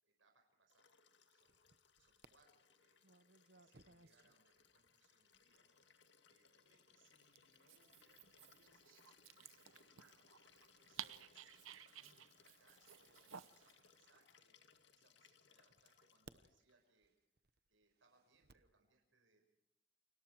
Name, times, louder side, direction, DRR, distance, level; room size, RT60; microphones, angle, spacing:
voice 1, 0.0-1.6 2.0-3.1 3.5-5.7 6.3-10.3 10.8-11.5 12.0-14.6 14.9-17.1 17.7-19.4, right 3 dB, 75° right, 3 dB, 5.0 m, -76 dB
Liquid, 0.7-16.7 18.0-18.1, left 6 dB, 60° left, 2.2 m, -70 dB
sound 1, 1.4-2.3 3.0-15.1 15.7-18.7, right 3 dB, 50° right, 1.0 m, -70 dB
Dog, 7.5-13.8, right 10 dB, 90° right, 1.0 m, -56 dB
29.5 x 25.5 x 4.6 m, 0.80 s
head